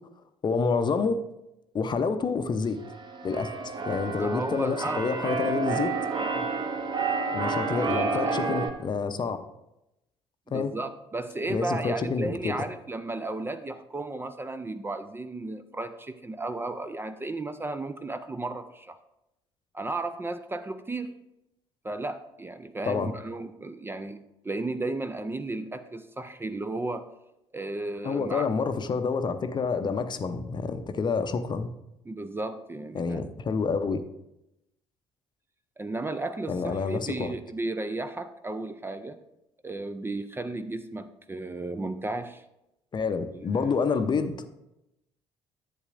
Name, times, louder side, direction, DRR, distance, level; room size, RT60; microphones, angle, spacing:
voice 1, 0.4-1.2 1.7-2.8 3.2-5.9 7.3-9.4 10.5-10.7 11.5-12.6 22.8-23.1 28.0-31.7 32.9-34.0 36.5-37.3 42.9-44.5, left 5 dB, 30° left, 9 dB, 0.7 m, -28 dB
Keyboard (musical), 2.8-8.7, right 4 dB, 35° right, 1.1 m, -30 dB
voice 2, 4.2-5.0 6.3-6.5 7.7-8.2 10.5-19.0 19.7-21.1 21.8-24.2 24.4-27.1 27.5-28.5 32.1-33.2 35.8-39.2 39.6-42.4 43.3-43.8, right 2 dB, 15° right, 10 dB, 0.5 m, -34 dB
11.0 x 8.1 x 2.6 m, 0.88 s
figure-of-eight pair, 50°, 14 cm